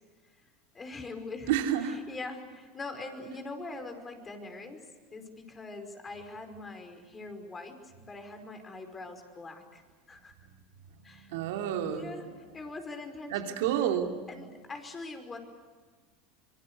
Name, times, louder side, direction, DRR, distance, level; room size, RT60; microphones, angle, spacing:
voice 1, 0.7-1.5 1.8-10.3 11.0-11.4 11.9-12.3 12.5-13.6 14.3-15.4, left 3 dB, 25° left, 6 dB, 5.3 m, -43 dB
voice 2, 1.5-2.0 11.3-12.1 13.3-14.1, right 10 dB, 75° right, 4 dB, 3.0 m, -29 dB
25.5 x 23.5 x 8.3 m, 1.5 s
hypercardioid pair, 90°, 0 cm